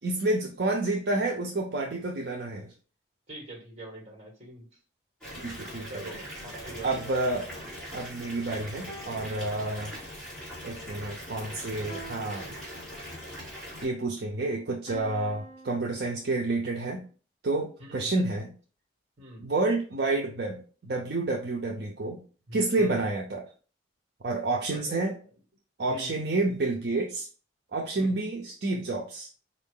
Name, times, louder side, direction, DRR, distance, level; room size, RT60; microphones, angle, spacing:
voice 1, 0.0-2.7 5.4-6.1 6.8-7.5 7.9-9.9 10.6-12.6 13.8-17.0 17.4-18.5 19.4-22.2 22.5-23.4 24.2-25.1 25.8-27.3 27.7-29.3, right 2 dB, 55° right, 0 dB, 0.5 m, -29 dB
voice 2, 3.3-4.7 5.9-7.1 17.8-18.1 19.2-19.5 22.5-22.9 24.7-25.1 25.9-26.2 28.0-28.1, right 1 dB, 35° right, 1 dB, 1.5 m, -44 dB
Water tap faucet / Bathtub (filling or washing) / Fill (with liquid), 5.2-13.8, equal, 5° left, 2.0 m, -41 dB
sound 1, 8.9-10.3 11.9-13.3 14.9-16.3, right 2 dB, 35° left, 1.4 m, -48 dB
4.3 x 2.6 x 3.7 m, 0.38 s
head